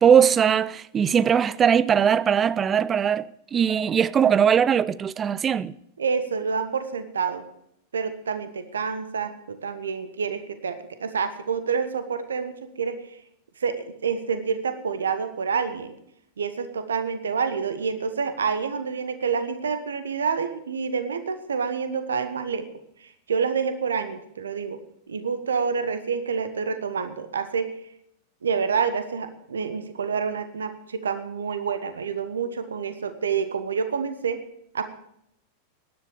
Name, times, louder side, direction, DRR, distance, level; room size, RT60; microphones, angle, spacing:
voice 1, 0.0-5.7, right 8 dB, 25° right, 0.5 m, -20 dB
voice 2, 6.0-7.4 7.9-13.0 13.6-15.9 16.4-22.6 23.0-24.8 25.1-27.7 28.4-34.4 34.7-34.8, right 6 dB, 70° right, 1.3 m, -28 dB
17.5 x 11.0 x 5.0 m
figure-of-eight pair, 90°, 0 cm